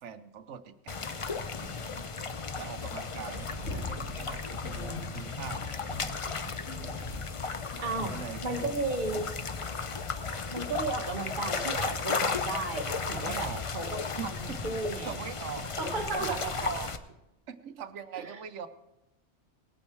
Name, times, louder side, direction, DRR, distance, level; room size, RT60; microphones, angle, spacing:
voice 1, 0.0-1.8 2.6-6.1 6.4-6.7 7.8-8.7 13.1-13.6 14.2-15.7 16.0-16.9 17.5-18.7, right 7 dB, 80° right, 10 dB, 1.1 m, -42 dB
sound 1, 0.9-17.0, left 4 dB, 35° left, 0.5 m, -35 dB
sound 2, 3.2-14.1, left 3 dB, 80° left, 2.9 m, -43 dB
voice 2, 7.8-8.1 8.4-9.3 10.5-15.1 15.8-16.4 18.2-18.3, right 3 dB, 45° right, 4 dB, 1.4 m, -34 dB
19.0 x 8.6 x 4.5 m, 0.95 s
omnidirectional pair, 1.2 m